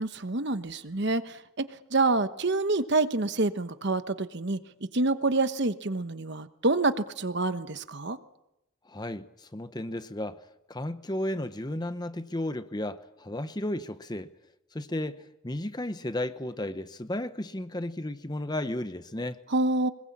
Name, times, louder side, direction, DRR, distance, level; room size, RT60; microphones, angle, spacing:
voice 1, 0.0-4.6 4.9-8.2 19.5-19.9, right 2 dB, 50° right, 1.1 m, -27 dB
voice 2, 8.8-14.3 14.7-19.4, left 1 dB, 20° left, 0.8 m, -34 dB
25.0 x 21.5 x 8.6 m
head